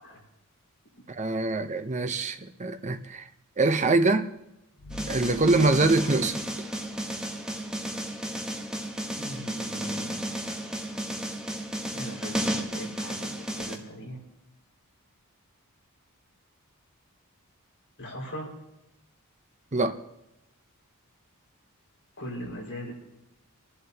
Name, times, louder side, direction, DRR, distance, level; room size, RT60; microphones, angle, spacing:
voice 1, 1.2-3.3 3.6-4.3 5.1-6.4 19.7-20.0, right 3 dB, 30° right, 8 dB, 0.7 m, -24 dB
sound 1, 4.8-7.3, left 1 dB, 90° left, 3.3 m, -45 dB
sound 2, 4.9-13.8, equal, 5° right, 1.1 m, -33 dB
voice 2, 9.2-10.2 11.9-14.2 18.0-18.5 22.2-22.9, equal, 55° left, -4 dB, 5.1 m, -39 dB
29.0 x 11.5 x 2.9 m, 0.91 s
head